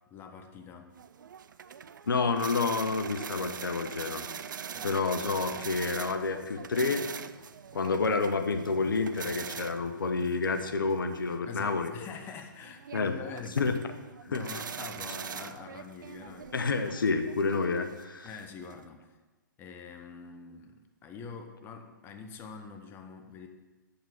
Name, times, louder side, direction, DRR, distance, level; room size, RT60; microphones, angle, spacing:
voice 1, 0.1-0.9 4.7-4.9 11.5-13.7 14.3-16.5 18.2-19.2 19.6-23.5, left 5 dB, 20° left, 5 dB, 0.8 m, -45 dB
sound 1, 1.0-18.8, right 7 dB, 65° right, 0.5 m, -43 dB
voice 2, 2.1-4.3 4.8-7.1 7.7-11.9 12.9-13.1 13.6-13.7 14.3-14.4 16.5-18.3, left 4 dB, 80° left, 8 dB, 0.9 m, -29 dB
7.7 x 7.0 x 7.1 m, 1.2 s
hypercardioid pair, 130°, 11 cm